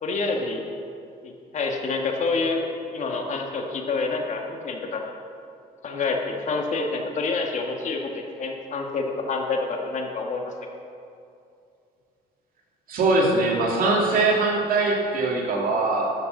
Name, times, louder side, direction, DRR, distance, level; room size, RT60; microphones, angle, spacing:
voice 1, 0.0-0.6 1.2-2.6 2.9-5.0 5.8-10.5, left 3 dB, 45° left, 2 dB, 1.7 m, -27 dB
voice 2, 12.9-16.1, right 3 dB, 60° right, -1 dB, 2.6 m, -22 dB
12.5 x 6.8 x 6.6 m, 2.5 s
cardioid pair, 110°, 17 cm